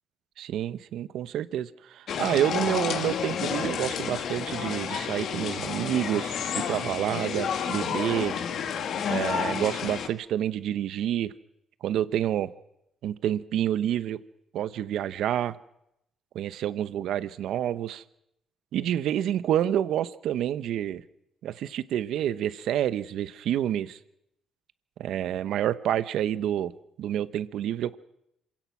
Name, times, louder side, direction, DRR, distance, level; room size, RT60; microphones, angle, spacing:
voice 1, 0.4-8.3 9.1-11.3 11.8-12.5 13.0-14.2 14.5-15.6 16.3-18.0 18.7-21.0 21.4-24.0 25.0-26.7 27.0-28.0, right 11 dB, 80° right, 15 dB, 0.9 m, -28 dB
sound 1, 2.1-10.1, left 7 dB, 70° left, 1.7 m, -30 dB
26.5 x 16.5 x 6.1 m, 0.79 s
cardioid pair, 90°, 0 cm